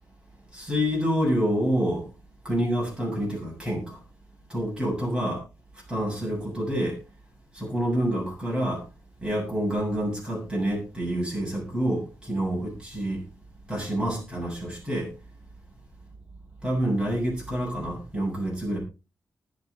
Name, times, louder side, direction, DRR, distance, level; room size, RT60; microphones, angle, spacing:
voice 1, 0.5-2.1 2.4-4.0 4.5-5.4 5.9-7.0 7.5-8.8 9.2-13.2 13.7-15.1 16.6-18.8, equal, 15° right, 7.5 m, -27 dB
20.0 x 6.9 x 4.1 m
wide cardioid pair, 160°, 6 cm